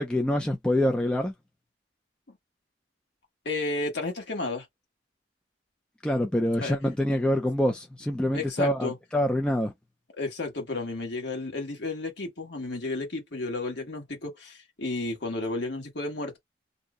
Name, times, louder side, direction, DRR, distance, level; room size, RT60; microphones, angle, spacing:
voice 1, 0.0-1.3 6.0-9.7, left 1 dB, 5° left, 0.4 m, -26 dB
voice 2, 3.4-4.7 6.6-6.8 8.3-9.0 10.2-16.4, left 2 dB, 65° left, 1.3 m, -32 dB
2.7 x 2.1 x 3.6 m
head